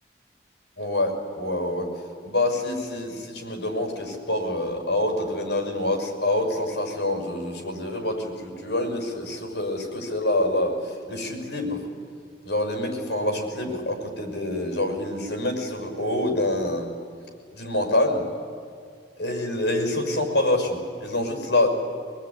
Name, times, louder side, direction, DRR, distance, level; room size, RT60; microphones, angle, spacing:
voice 1, 0.8-1.9 2.2-11.8 12.4-16.9 17.5-18.3 19.2-21.7, left 1 dB, 85° left, 4 dB, 6.2 m, -26 dB
24.0 x 21.5 x 9.9 m, 2.2 s
head